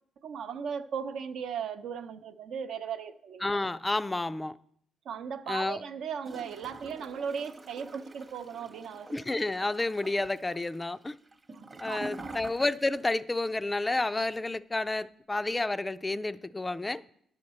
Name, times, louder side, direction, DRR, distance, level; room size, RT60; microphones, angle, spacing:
voice 1, 0.2-3.5 5.0-9.1 11.5-12.4, right 7 dB, 70° right, 0.6 m, -37 dB
voice 2, 3.4-4.6 5.5-5.8 9.1-11.2 11.8-17.0, left 2 dB, 15° left, 0.3 m, -30 dB
Gurgling / Toilet flush, 6.2-13.1 13.4-13.5, right 2 dB, 25° right, 0.8 m, -46 dB
10.5 x 6.5 x 4.2 m
cardioid pair, 90°, 0 cm